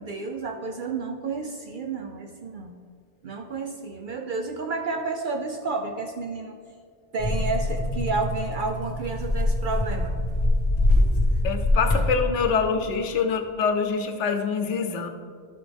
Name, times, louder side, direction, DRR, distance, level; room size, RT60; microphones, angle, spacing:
voice 1, 0.0-2.8 3.2-6.6 7.1-10.2, right 3 dB, 55° right, 3 dB, 0.6 m, -31 dB
sound 1, 7.2-12.2, left 1 dB, 35° left, 1.5 m, -24 dB
voice 2, 11.4-15.1, left 5 dB, 85° left, 6 dB, 1.0 m, -25 dB
12.5 x 6.0 x 3.4 m, 2.1 s
omnidirectional pair, 1.2 m